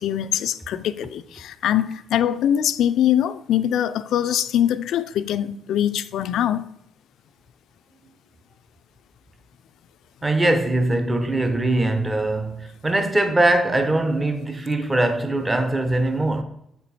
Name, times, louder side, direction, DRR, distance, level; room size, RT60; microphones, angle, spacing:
voice 1, 0.0-6.7, left 10 dB, 80° left, 0.3 m, -23 dB
voice 2, 10.2-16.4, right 2 dB, 20° right, 0.8 m, -21 dB
7.5 x 4.4 x 4.1 m
cardioid pair, 90°, 0 cm